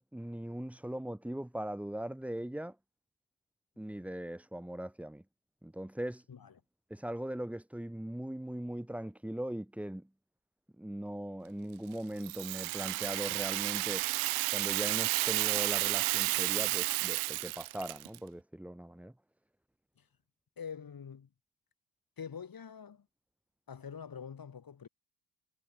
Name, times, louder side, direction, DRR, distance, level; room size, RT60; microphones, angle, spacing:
voice 1, 0.0-2.8 3.8-5.2 5.6-6.2 6.9-10.1 10.8-14.1 14.5-19.1, right 1 dB, 5° right, 1.0 m, -40 dB
Rattle (instrument), 12.2-18.2, right 38 dB, 85° right, 1.1 m, -32 dB
voice 2, 20.6-21.3 22.2-23.1 23.7-24.9, left 7 dB, 45° left, 4.5 m, -45 dB
hypercardioid pair, 50°, 48 cm